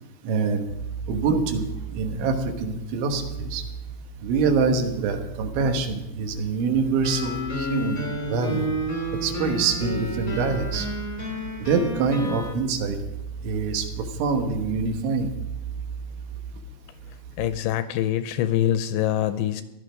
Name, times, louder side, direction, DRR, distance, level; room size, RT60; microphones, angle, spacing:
voice 1, 0.2-0.7 1.1-3.6 4.2-8.0 8.3-8.7 9.2-10.9 11.6-13.0 13.4-15.3, right 4 dB, 80° right, 5 dB, 3.6 m, -25 dB
sound 1, 0.7-17.5, right 6 dB, 55° right, 4.4 m, -38 dB
sound 2, 7.0-12.5, equal, 30° left, 1.1 m, -31 dB
voice 2, 17.4-19.6, left 12 dB, 80° left, 11 dB, 2.7 m, -24 dB
15.5 x 11.5 x 5.1 m, 0.96 s
omnidirectional pair, 5.4 m